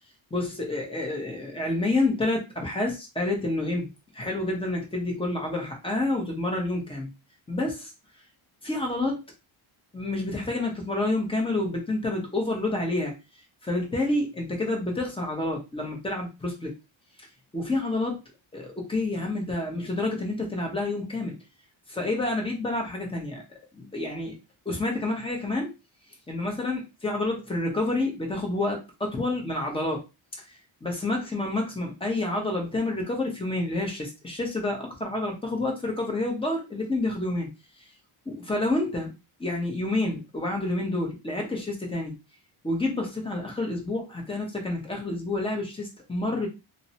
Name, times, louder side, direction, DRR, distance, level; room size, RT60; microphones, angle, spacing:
voice 1, 0.3-7.1 7.5-7.9 8.6-9.2 9.9-13.1 13.6-16.7 17.5-18.2 18.5-21.3 21.9-23.4 23.7-24.4 24.7-25.7 26.3-30.0 30.8-37.5 38.3-39.1 39.4-42.2 42.6-46.5, left 2 dB, 10° left, 0 dB, 0.7 m, -28 dB
2.7 x 2.1 x 2.7 m, 0.26 s
wide cardioid pair, 155°, 49 cm